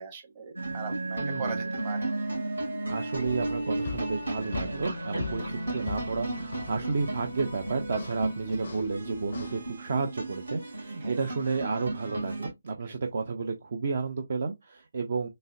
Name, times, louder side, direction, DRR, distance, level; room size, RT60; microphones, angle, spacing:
voice 1, 0.0-2.0 11.0-11.2 12.8-12.9, right 5 dB, 25° right, 1.2 m, -39 dB
sound 1, 0.6-12.5, right 2 dB, 65° right, 2.5 m, -34 dB
voice 2, 1.2-1.6 2.9-15.3, right 4 dB, 40° right, 0.6 m, -32 dB
sound 2, 3.3-9.6, left 5 dB, 45° left, 0.4 m, -42 dB
4.0 x 3.0 x 2.5 m
figure-of-eight pair, 145°, 0 cm